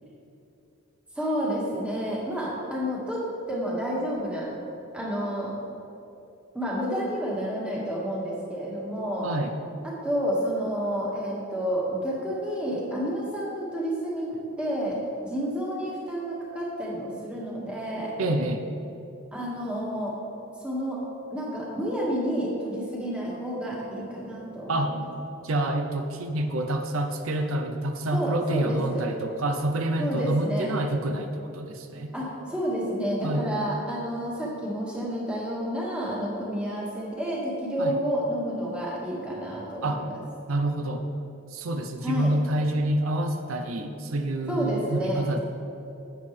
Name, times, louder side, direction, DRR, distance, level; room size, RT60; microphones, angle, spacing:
voice 1, 1.2-3.2 3.5-4.5 4.9-5.6 6.5-9.3 9.8-18.1 19.3-20.1 20.6-25.0 28.1-29.1 30.0-30.7 32.1-40.1 42.0-42.3 44.5-45.4, equal, 5° right, -5 dB, 1.8 m, -30 dB
voice 2, 18.2-18.7 24.7-25.0 25.4-32.1 33.2-33.7 37.8-37.9 39.8-40.0 40.5-41.0 41.5-45.4, right 1 dB, 85° right, 6 dB, 0.7 m, -27 dB
11.0 x 8.4 x 3.3 m, 2.9 s
head